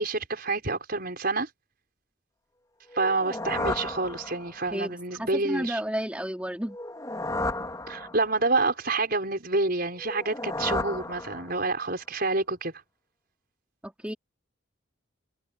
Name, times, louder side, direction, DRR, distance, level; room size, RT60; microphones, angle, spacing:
voice 1, 0.0-1.5 2.9-5.8 7.9-12.7, right 3 dB, 45° right, 5.8 m, -28 dB
sound 1, 2.9-4.8 6.7-8.5 10.0-11.8, left 2 dB, 15° left, 4.1 m, -33 dB
voice 2, 4.7-6.8 13.8-14.1, equal, 5° right, 3.0 m, -32 dB
head